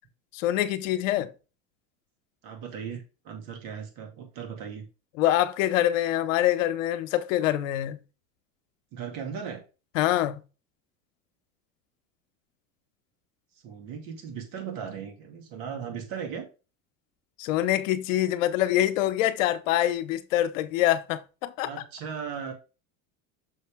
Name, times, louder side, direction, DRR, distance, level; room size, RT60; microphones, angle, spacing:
voice 1, 0.3-1.3 5.2-8.0 9.9-10.4 17.4-21.7, left 13 dB, 80° left, 0.9 m, -25 dB
voice 2, 2.4-4.9 8.9-9.6 13.6-16.5 21.6-22.5, right 7 dB, 60° right, 2.7 m, -37 dB
6.2 x 5.7 x 3.6 m
supercardioid pair, 105°, 38 cm